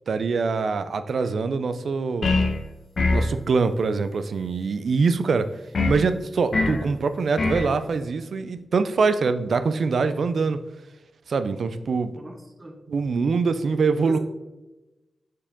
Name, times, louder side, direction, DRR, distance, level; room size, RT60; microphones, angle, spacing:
voice 1, 0.1-2.3 3.1-5.5 5.9-10.6 11.3-12.1 12.9-14.2, right 4 dB, 75° right, 11 dB, 0.5 m, -24 dB
sound 1, 2.2-2.6 3.0-3.3 5.7-6.0 6.5-6.8 7.4-7.7, left 3 dB, 60° left, 1.0 m, -22 dB
voice 2, 12.1-12.8 14.0-14.2, right 1 dB, 20° right, 2 dB, 1.0 m, -40 dB
7.0 x 4.8 x 3.7 m, 1.1 s
wide cardioid pair, 100°, 0 cm